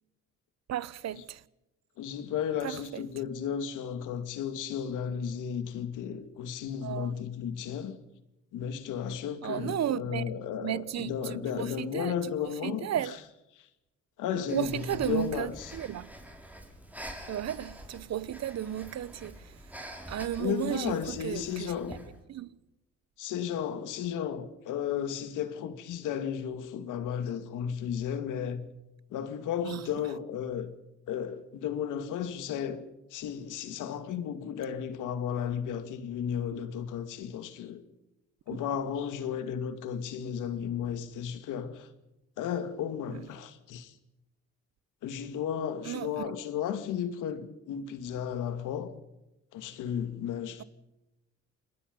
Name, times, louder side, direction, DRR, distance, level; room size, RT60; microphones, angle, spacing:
voice 1, 0.7-1.4 2.6-3.0 6.8-7.2 9.4-13.2 14.5-16.1 17.3-19.7 20.1-21.7 22.3-22.6 29.6-30.1 36.5-36.7 43.1-43.3 45.8-46.3, right 11 dB, 60° right, 0.9 m, -34 dB
voice 2, 2.0-8.0 8.5-12.9 13.6-13.7 14.2-15.7 20.4-22.0 23.2-28.7 29.1-30.7 31.1-32.8 33.1-37.8 38.5-41.9 42.4-44.0 45.0-48.9 49.5-50.6, left 8 dB, 90° left, 2.3 m, -34 dB
Breathing, 14.5-22.2, right 1 dB, 5° right, 5.4 m, -46 dB
28.0 x 21.5 x 5.4 m
cardioid pair, 90°, 30 cm